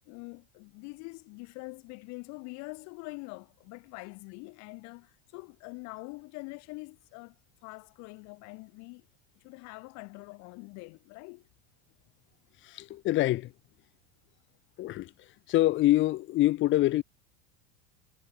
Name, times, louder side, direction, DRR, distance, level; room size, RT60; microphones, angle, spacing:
voice 1, 0.1-7.4 7.6-9.1 9.4-11.4, left 29 dB, 55° left, 1.2 m, -44 dB
voice 2, 12.6-13.5 14.8-15.1 15.5-17.0, left 16 dB, 35° left, 0.8 m, -25 dB
supercardioid pair, 130°, 33 cm